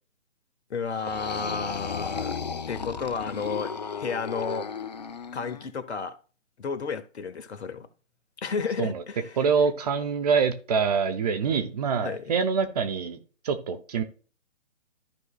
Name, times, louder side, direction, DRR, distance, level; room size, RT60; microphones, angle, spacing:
voice 1, 0.7-2.4 2.7-4.7 5.3-6.2 6.6-7.9 8.4-9.4 12.0-12.3, left 5 dB, 60° left, 1.1 m, -32 dB
sound 1, 0.9-5.7, left 5 dB, 35° left, 0.4 m, -35 dB
voice 2, 9.4-13.2 13.4-14.0, right 5 dB, 30° right, 0.9 m, -25 dB
14.0 x 4.8 x 2.4 m
figure-of-eight pair, 145°, 37 cm